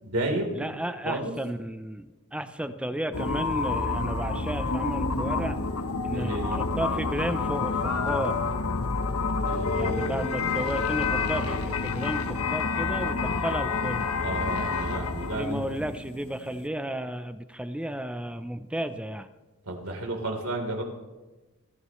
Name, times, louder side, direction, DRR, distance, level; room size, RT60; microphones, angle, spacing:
voice 1, 0.0-0.7 1.0-1.3 6.1-6.6 9.4-10.1 14.2-15.7 19.7-20.8, right 1 dB, 75° right, 2 dB, 3.7 m, -32 dB
voice 2, 0.6-5.6 6.0-8.4 9.7-14.1 15.4-19.3, right 1 dB, 5° right, 10 dB, 0.6 m, -33 dB
sound 1, 3.1-16.7, left 4 dB, 85° left, 1.1 m, -28 dB
24.0 x 14.5 x 3.2 m, 1.1 s
head